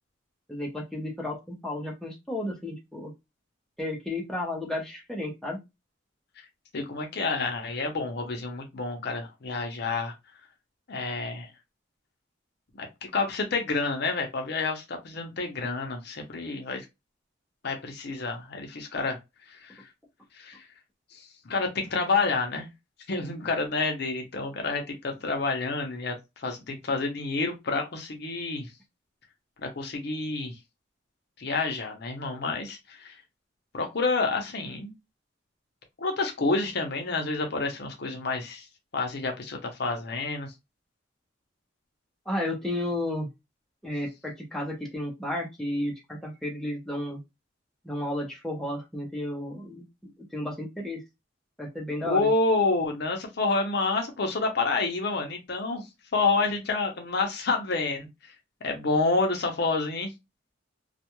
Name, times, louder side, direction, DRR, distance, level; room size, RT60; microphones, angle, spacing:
voice 1, 0.5-3.1 3.8-5.6 42.3-43.3 43.8-47.2 47.8-51.0 51.6-52.3, left 1 dB, ahead, -2 dB, 0.7 m, -33 dB
voice 2, 6.7-10.1 10.9-11.5 12.8-16.8 17.6-19.2 19.5-19.8 20.3-20.6 21.1-22.7 23.1-26.1 26.4-28.7 29.6-30.5 31.4-33.2 33.7-34.9 36.0-38.7 38.9-40.5 52.0-55.8 56.1-58.1 58.6-60.1, left 3 dB, 60° left, 3 dB, 0.6 m, -28 dB
2.3 x 2.2 x 2.9 m, 0.22 s
head